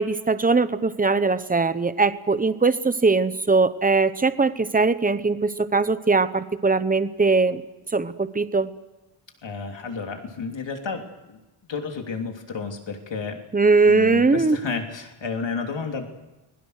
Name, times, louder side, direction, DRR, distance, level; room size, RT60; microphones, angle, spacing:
voice 1, 0.0-7.6 7.9-8.7 13.5-14.6, right 3 dB, 15° right, 13 dB, 0.9 m, -20 dB
voice 2, 9.4-11.4 11.7-13.4 13.8-16.1, left 4 dB, 60° left, 3 dB, 3.2 m, -31 dB
29.5 x 21.5 x 6.6 m, 1.0 s
wide cardioid pair, 165°, 49 cm